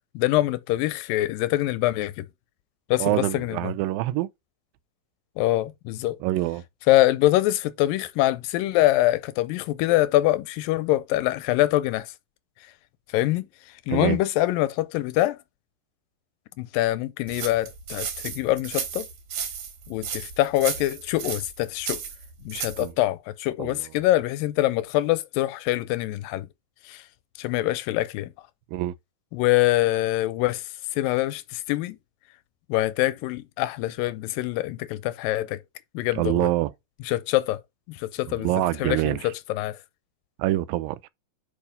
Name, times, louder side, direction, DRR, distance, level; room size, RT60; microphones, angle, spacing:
voice 1, 0.2-2.3 2.9-3.7 5.4-6.2 6.9-12.1 13.1-13.5 13.9-15.4 16.6-19.1 19.9-22.0 22.5-26.5 26.9-27.0 27.4-28.3 29.3-30.6 31.0-32.0 32.7-35.6 35.9-36.5 37.0-37.6 37.9-38.5 38.8-39.8, left 16 dB, 90° left, 2.3 m, -24 dB
voice 2, 3.0-4.3 6.2-6.6 13.9-14.2 22.8-22.9 23.6-23.8 28.7-28.9 36.2-36.7 38.3-39.2 40.4-41.0, right 16 dB, 90° right, 2.3 m, -25 dB
sound 1, 17.3-22.9, right 7 dB, 60° right, 2.5 m, -34 dB
5.3 x 4.6 x 5.1 m
omnidirectional pair, 4.0 m